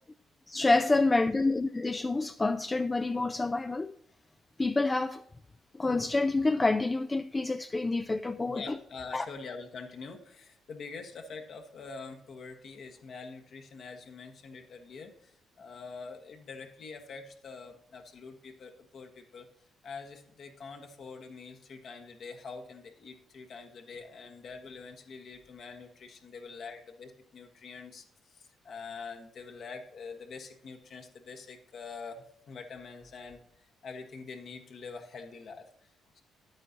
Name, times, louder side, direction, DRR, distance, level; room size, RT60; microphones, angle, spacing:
voice 1, 0.5-3.9 4.6-5.2 5.7-8.6 9.1-9.3, left 3 dB, 20° left, 0.4 m, -27 dB
voice 2, 8.5-19.5 19.8-35.6 36.1-36.2, left 4 dB, 60° left, 1.5 m, -45 dB
10.5 x 8.8 x 2.9 m
cardioid pair, 90°, 0 cm